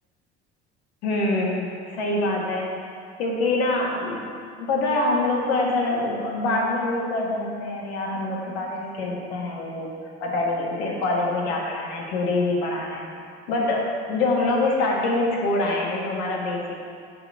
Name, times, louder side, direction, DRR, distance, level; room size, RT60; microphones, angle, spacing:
voice 1, 1.0-2.7 3.2-4.3 4.6-9.9 10.2-13.1 13.5-16.7, left 2 dB, 80° left, -2 dB, 1.6 m, -25 dB
6.9 x 5.2 x 6.1 m, 2.2 s
hypercardioid pair, 65°, 32 cm